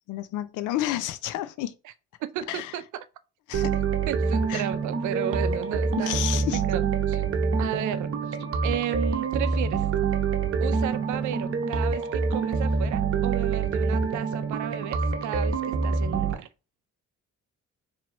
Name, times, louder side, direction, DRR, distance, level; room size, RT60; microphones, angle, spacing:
voice 1, 0.1-1.8 2.5-2.7 3.5-3.8 4.5-4.6 6.0-6.6, left 13 dB, 85° left, 0.5 m, -30 dB
voice 2, 2.2-3.1 4.1-6.8 7.1-7.2 7.6-8.4 8.6-9.9 10.6-16.5, right 11 dB, 75° right, 0.5 m, -33 dB
sound 1, 3.5-16.3, right 5 dB, 50° right, 0.8 m, -26 dB
4.4 x 2.8 x 2.9 m
cardioid pair, 90°, 30 cm